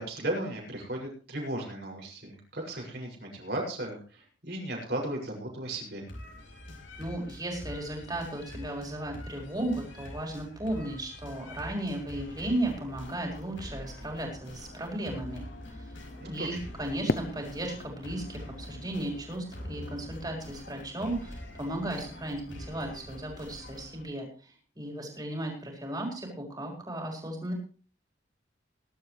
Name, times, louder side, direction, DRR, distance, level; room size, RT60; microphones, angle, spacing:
voice 1, 0.0-6.0 16.2-16.6, right 1 dB, 55° right, 0 dB, 6.7 m, -36 dB
sound 1, 6.1-24.0, left 1 dB, 80° left, 5.6 m, -45 dB
voice 2, 7.0-15.8 16.2-24.3 24.7-27.5, right 1 dB, 20° right, 0 dB, 4.9 m, -35 dB
Fireworks, 17.1-20.1, left 3 dB, 50° left, 0.6 m, -36 dB
21.5 x 12.0 x 3.3 m, 0.39 s
head